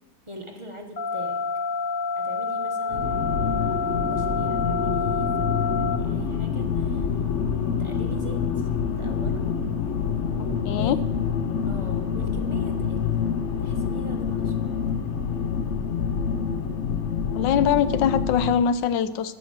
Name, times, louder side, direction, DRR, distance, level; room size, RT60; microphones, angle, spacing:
voice 1, 0.3-1.5 2.2-7.1 7.8-9.5 10.3-11.2 11.7-13.2 13.6-15.0, equal, 20° right, 2 dB, 1.1 m, -42 dB
sound 1, 1.0-6.0, left 4 dB, 30° left, 1.3 m, -28 dB
sound 2, 2.9-18.6, left 6 dB, 55° left, 0.8 m, -26 dB
voice 2, 10.6-11.0 17.3-19.3, left 8 dB, 80° left, 14 dB, 1.3 m, -22 dB
9.9 x 9.1 x 7.4 m, 1.1 s
omnidirectional pair, 2.0 m